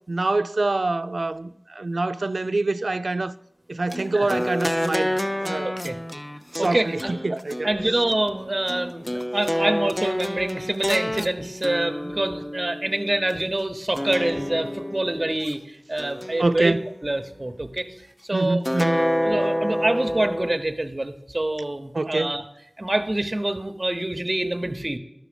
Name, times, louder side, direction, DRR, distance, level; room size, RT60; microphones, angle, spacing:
voice 1, 0.1-3.3 3.7-5.7 6.5-7.7 16.4-16.8 18.3-19.0 21.9-22.4, right 2 dB, 75° right, 0.4 m, -25 dB
sound 1, 3.9-13.4 14.0-15.5 16.0-17.1 18.6-20.6, equal, 20° left, 0.6 m, -28 dB
voice 2, 5.6-6.0 6.6-16.8 17.0-17.9 18.2-18.6 19.2-22.4 22.8-25.0, right 1 dB, 40° right, 0.9 m, -26 dB
12.0 x 6.2 x 5.1 m
wide cardioid pair, 40°, 0 cm